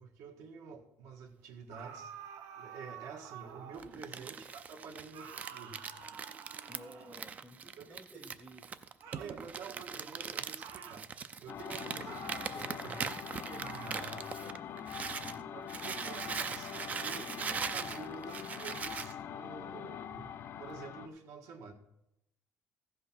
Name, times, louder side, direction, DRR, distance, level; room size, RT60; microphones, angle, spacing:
voice 1, 0.0-2.1 2.6-5.9 6.3-6.4 6.9-7.1 7.8-8.2 9.2-11.1 11.4-12.2 12.7-14.3 15.5-21.7, right 5 dB, 70° right, 3 dB, 1.6 m, -49 dB
sound 1, 1.7-4.0 5.1-7.4 9.0-9.4 10.6-11.1 12.0-12.6 13.6-14.1, right 8 dB, 90° right, 1.1 m, -49 dB
Crumpling crinkling, 3.8-15.4 15.7-19.1, right 6 dB, 30° right, 0.4 m, -41 dB
voice 2, 6.7-8.6 11.8-12.2 12.5-12.9 15.2-15.6, equal, ahead, 7 dB, 0.8 m, -54 dB
sound 2, 11.5-21.1, left 8 dB, 45° left, 0.5 m, -44 dB
14.5 x 5.5 x 5.9 m, 0.85 s
cardioid pair, 160°, 5 cm